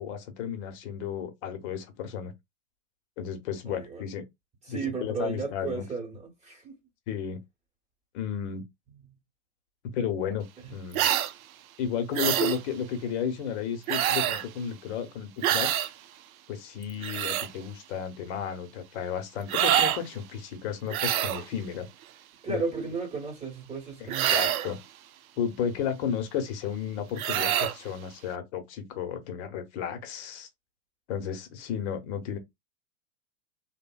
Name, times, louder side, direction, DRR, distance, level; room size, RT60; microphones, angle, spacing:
voice 1, 0.0-2.3 3.2-4.2 4.7-5.8 7.1-7.4 8.1-8.6 9.8-10.4 10.7-11.0 11.8-15.9 16.5-21.9 22.5-22.9 24.0-24.8 25.4-30.5 31.1-32.4, left 8 dB, 50° left, 0.9 m, -33 dB
voice 2, 3.6-4.0 4.6-6.8 8.9-9.1 10.6-10.7 22.4-24.4, right 5 dB, 15° right, 1.0 m, -34 dB
sound 1, 10.9-11.3 12.1-12.6 13.9-14.5 15.4-15.9 16.8-17.5 19.5-20.0 20.9-21.4 24.1-24.7 27.2-27.8, right 11 dB, 70° right, 0.5 m, -26 dB
2.7 x 2.1 x 2.3 m
hypercardioid pair, 110°, 44 cm